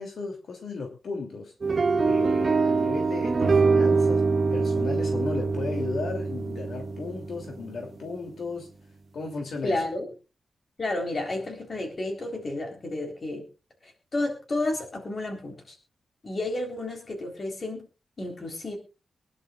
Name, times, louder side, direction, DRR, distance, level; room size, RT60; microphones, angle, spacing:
voice 1, 0.0-1.5 2.0-4.3 4.5-8.7 9.1-9.8, left 4 dB, 75° left, 2 dB, 2.9 m, -35 dB
sound 1, 1.6-7.9, right 4 dB, 40° right, 1.3 m, -24 dB
voice 2, 9.6-10.1 10.8-13.4 14.1-15.8 16.2-17.8 18.2-18.8, left 2 dB, 40° left, 3 dB, 3.9 m, -31 dB
24.0 x 11.0 x 2.4 m, 0.31 s
wide cardioid pair, 145°, 0 cm